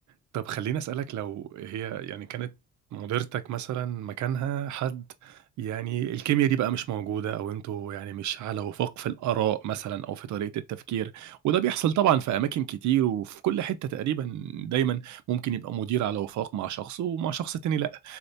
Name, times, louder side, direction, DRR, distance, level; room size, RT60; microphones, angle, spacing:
voice 1, 0.3-2.5 2.9-18.2, right 11 dB, 75° right, 0.6 m, -29 dB
4.1 x 2.1 x 2.6 m
cardioid pair, 90°, 30 cm